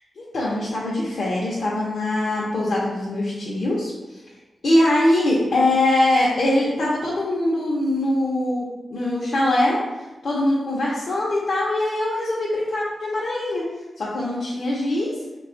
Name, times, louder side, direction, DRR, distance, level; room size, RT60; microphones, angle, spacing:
voice 1, 0.2-3.9 4.6-8.6 8.9-9.8 10.2-13.6 14.0-15.1, left 1 dB, 70° left, -6 dB, 0.6 m, -22 dB
3.2 x 2.3 x 3.7 m, 1.1 s
cardioid pair, 80°, 0 cm